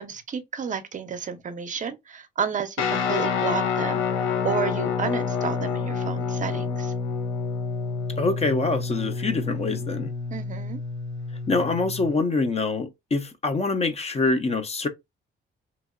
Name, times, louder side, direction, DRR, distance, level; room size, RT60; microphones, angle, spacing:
voice 1, 0.0-4.0 4.4-6.9 10.3-10.8, right 7 dB, 40° right, 0.5 m, -31 dB
Guitar, 2.8-12.2, left 5 dB, 90° left, 0.6 m, -28 dB
voice 2, 8.2-10.1 11.5-14.9, left 3 dB, 30° left, 0.5 m, -25 dB
2.9 x 2.7 x 2.4 m
cardioid pair, 90°, 20 cm